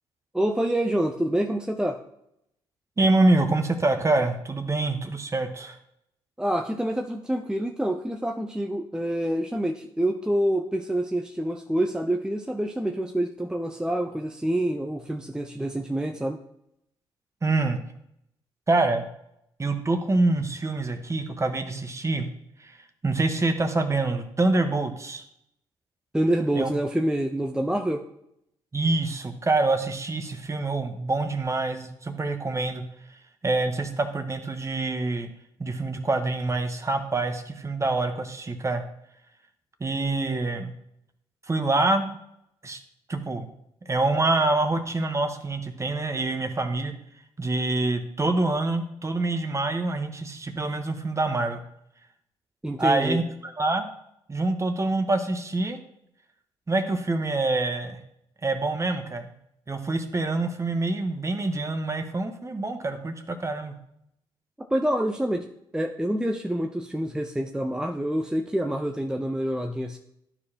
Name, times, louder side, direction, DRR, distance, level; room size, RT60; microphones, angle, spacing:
voice 1, 0.3-2.0 6.4-16.4 26.1-28.0 52.6-53.2 64.7-65.5 65.7-70.0, right 1 dB, 5° right, 2 dB, 0.7 m, -27 dB
voice 2, 3.0-5.8 17.4-17.8 18.7-19.1 19.6-22.3 22.6-22.8 23.0-25.2 26.5-26.7 28.7-32.8 33.1-35.3 35.6-38.8 39.8-40.7 41.5-42.1 42.6-42.8 43.1-43.5 43.9-46.9 47.4-51.6 52.8-53.9 54.3-55.8 56.7-58.0 58.4-59.3 59.7-63.8, right 2 dB, 25° right, 7 dB, 1.2 m, -26 dB
11.5 x 4.8 x 2.9 m, 0.76 s
hypercardioid pair, 55°, 11 cm